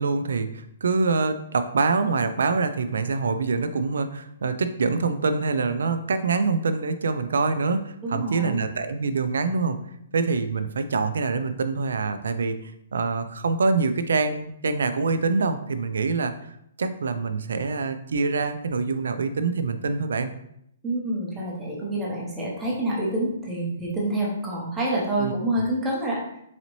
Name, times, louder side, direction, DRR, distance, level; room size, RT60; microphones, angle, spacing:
voice 1, 0.0-9.8 10.1-16.3 16.8-20.3 25.2-25.6, right 4 dB, 80° right, 10 dB, 0.4 m, -25 dB
voice 2, 8.0-8.6 20.8-26.2, right 1 dB, 10° right, -4 dB, 0.6 m, -27 dB
4.0 x 2.6 x 3.0 m, 0.74 s
hypercardioid pair, 175°, 0 cm